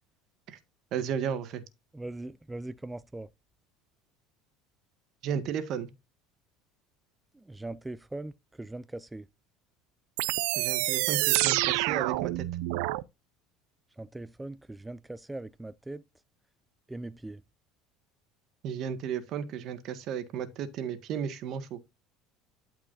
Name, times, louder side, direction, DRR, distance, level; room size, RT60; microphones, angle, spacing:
voice 1, 0.9-1.6 5.2-5.9 10.5-12.4 18.6-21.8, right 8 dB, 55° right, 1.7 m, -34 dB
voice 2, 1.9-3.3 7.3-8.3 8.6-9.3 14.0-16.0 16.9-17.4, right 2 dB, 10° right, 0.4 m, -40 dB
sound 1, 10.2-13.0, right 20 dB, 80° right, 0.5 m, -27 dB
12.5 x 4.8 x 2.6 m
supercardioid pair, 115°, 0 cm